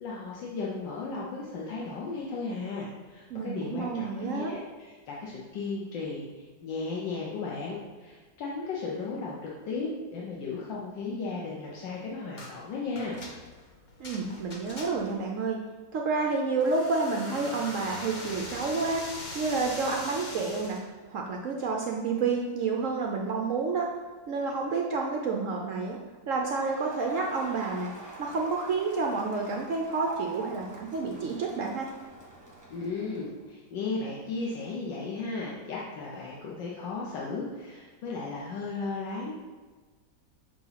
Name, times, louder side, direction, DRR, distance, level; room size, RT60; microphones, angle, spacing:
voice 1, 0.0-13.2 32.7-39.3, left 3 dB, 75° left, -4 dB, 1.5 m, -35 dB
voice 2, 3.3-4.5 14.0-15.6 15.9-19.1 19.3-20.8 21.1-23.9 24.3-26.0 26.3-27.9 28.2-31.9, right 4 dB, 70° right, 0 dB, 0.7 m, -29 dB
sound 1, 12.4-12.6 12.9-15.2 16.6-20.8, left 2 dB, 45° left, 0.6 m, -41 dB
Crowd, 26.4-33.4, right 3 dB, 15° right, 0.8 m, -46 dB
6.9 x 3.0 x 5.5 m, 1.4 s
omnidirectional pair, 2.0 m